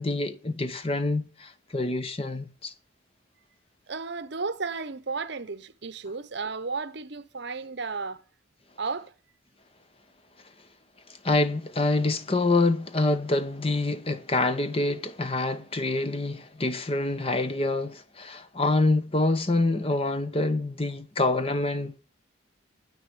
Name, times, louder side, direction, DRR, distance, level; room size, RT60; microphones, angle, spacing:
voice 1, 0.0-2.7 11.2-22.0, left 2 dB, 30° left, 0.8 m, -26 dB
voice 2, 3.9-8.2 8.8-9.1, right 4 dB, 55° right, 0.8 m, -33 dB
10.0 x 8.5 x 7.9 m
head